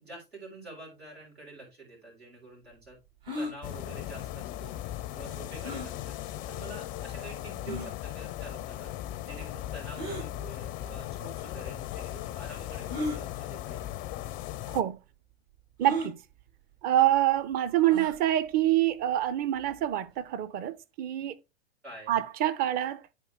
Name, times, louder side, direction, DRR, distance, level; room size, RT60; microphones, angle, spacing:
voice 1, 0.0-3.0 3.3-13.9 21.8-22.2, right 2 dB, 85° right, 4.7 m, -47 dB
sound 1, 3.2-3.5 5.6-5.9 6.7-6.8 7.7-7.9 9.9-10.3 11.3-11.4 12.9-13.2 14.1-14.3 14.5-14.6 15.8-16.1 17.8-18.2, equal, 65° right, 4.5 m, -34 dB
sound 2, 3.6-14.8, left 13 dB, 30° left, 0.4 m, -38 dB
voice 2, 14.7-15.0 15.8-16.2 16.8-21.4 22.1-23.0, right 13 dB, 30° right, 0.6 m, -26 dB
9.0 x 4.4 x 3.4 m
figure-of-eight pair, 95°, 31 cm